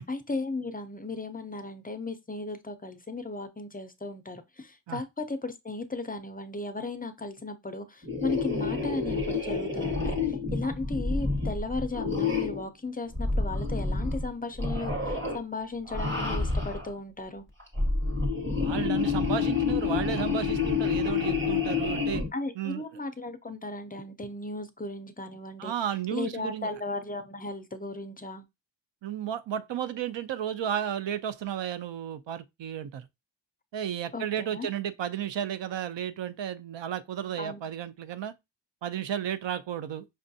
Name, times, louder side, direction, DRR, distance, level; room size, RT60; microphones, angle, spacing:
voice 1, 0.0-17.4 22.3-25.7 26.1-28.4 34.1-34.7 37.4-37.6, left 3 dB, 20° left, 0.4 m, -36 dB
sound 1, 8.0-12.7 13.1-14.3 14.6-15.4 15.9-16.9 17.6-22.3, left 4 dB, 25° right, 1.1 m, -28 dB
voice 2, 18.5-22.2 22.6-22.8 25.6-26.7 29.0-33.1 33.7-38.3 38.8-40.0, right 10 dB, 70° right, 0.5 m, -33 dB
5.2 x 2.3 x 2.6 m
wide cardioid pair, 115°, 45 cm